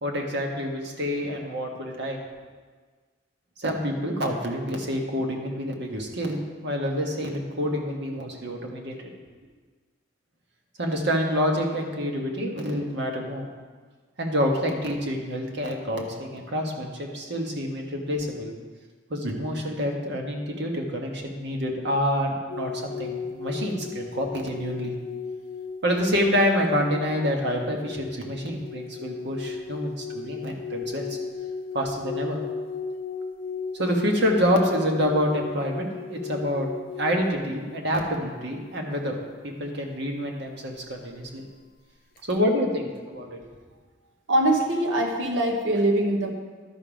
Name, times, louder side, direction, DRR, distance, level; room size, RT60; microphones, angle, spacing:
voice 1, 0.0-2.2 3.6-9.1 10.8-13.5 14.2-18.5 19.1-24.9 25.8-31.2 31.7-32.4 33.7-36.7 37.0-39.2 39.4-41.4 42.3-43.4, equal, 65° right, 1 dB, 1.4 m, -27 dB
sound 1, 22.5-38.9 42.2-42.4, left 5 dB, 50° left, 0.5 m, -36 dB
voice 2, 44.3-46.3, right 1 dB, 80° right, 2 dB, 1.0 m, -23 dB
12.0 x 5.3 x 5.1 m, 1.5 s
head